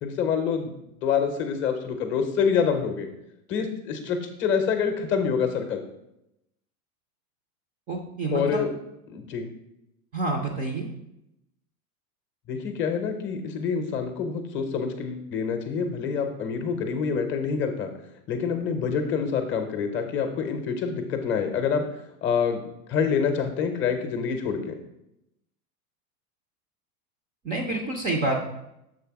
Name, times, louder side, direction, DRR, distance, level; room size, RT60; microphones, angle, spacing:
voice 1, 0.0-3.1 3.5-5.8 8.3-8.7 9.1-9.5 12.5-17.9 18.3-21.9 22.2-22.6 22.9-24.7, left 6 dB, 25° left, 6 dB, 0.7 m, -26 dB
voice 2, 7.9-8.6 10.1-10.9 27.4-28.4, right 2 dB, 20° right, 2 dB, 0.4 m, -28 dB
6.8 x 3.4 x 4.6 m, 0.84 s
supercardioid pair, 140°, 43 cm